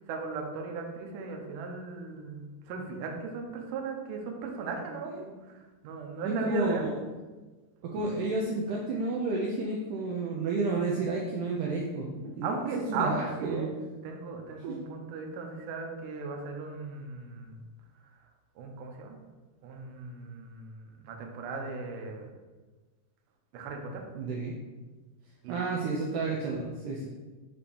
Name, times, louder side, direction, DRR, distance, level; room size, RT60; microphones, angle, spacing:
voice 1, 0.0-6.9 12.4-13.7 14.0-17.6 18.6-19.2 19.6-22.3 23.5-24.0 25.4-25.6, right 4 dB, 75° right, 2 dB, 2.1 m, -37 dB
voice 2, 6.3-6.9 7.8-12.5 12.9-13.7 14.6-14.8 24.2-24.5 25.5-27.1, right 3 dB, 90° right, -2 dB, 1.8 m, -31 dB
6.8 x 2.9 x 5.2 m, 1.3 s
omnidirectional pair, 4.5 m